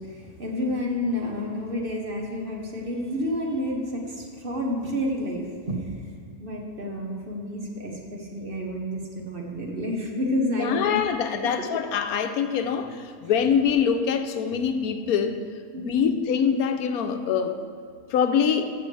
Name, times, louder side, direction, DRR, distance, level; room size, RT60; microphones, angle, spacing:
voice 1, 0.0-5.9 6.4-11.0 15.7-16.2, left 1 dB, 40° right, 0 dB, 1.2 m, -30 dB
voice 2, 10.6-15.4 15.8-17.6 18.1-18.6, left 7 dB, 85° left, 8 dB, 1.1 m, -24 dB
14.5 x 6.8 x 3.3 m, 2.1 s
omnidirectional pair, 1.5 m